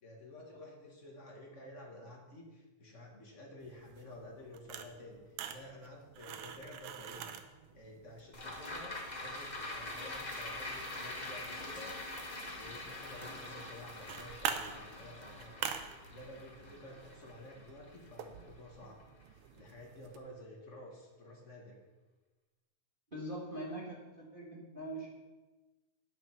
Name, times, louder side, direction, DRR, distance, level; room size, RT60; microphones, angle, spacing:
voice 1, 0.0-7.4 7.7-12.0 12.5-15.7 16.0-19.0 19.3-21.8, left 1 dB, 35° left, -1 dB, 1.2 m, -51 dB
sound 1, 3.6-20.2, right 8 dB, 90° right, 1.3 m, -47 dB
sound 2, 8.3-18.8 19.2-19.3, left 2 dB, 55° left, 0.4 m, -44 dB
voice 2, 23.1-25.1, right 1 dB, 25° right, -4 dB, 1.3 m, -42 dB
9.4 x 7.6 x 5.8 m, 1.2 s
omnidirectional pair, 3.5 m